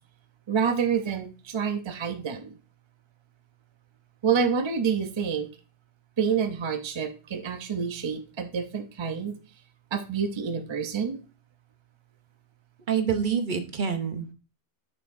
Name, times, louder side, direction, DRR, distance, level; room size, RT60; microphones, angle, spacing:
voice 1, 0.5-2.6 4.2-5.5 6.2-9.3 9.9-11.2, right 6 dB, 35° right, 7 dB, 0.5 m, -28 dB
voice 2, 12.9-14.3, right 7 dB, 50° right, 7 dB, 0.9 m, -27 dB
6.6 x 6.4 x 2.6 m, 0.34 s
omnidirectional pair, 1.1 m